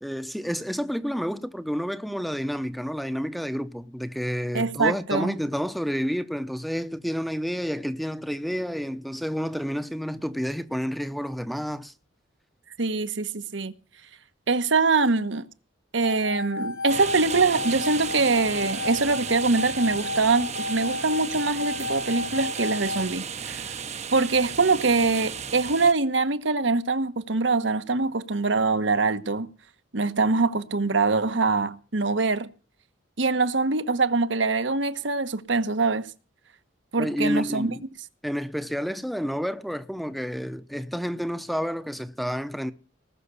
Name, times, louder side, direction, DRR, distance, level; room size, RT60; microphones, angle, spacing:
voice 1, 0.0-11.9 37.0-37.9 38.2-42.7, equal, ahead, 0.8 m, -30 dB
voice 2, 4.5-5.3 12.8-13.7 14.5-15.5 15.9-23.7 24.1-29.5 29.9-32.5 33.2-36.1 36.9-37.7, right 3 dB, 70° right, 1.2 m, -24 dB
sound 1, 16.0-23.1, left 2 dB, 85° left, 3.6 m, -32 dB
sound 2, 16.9-25.9, right 7 dB, 35° right, 0.8 m, -34 dB
19.5 x 6.6 x 8.2 m
head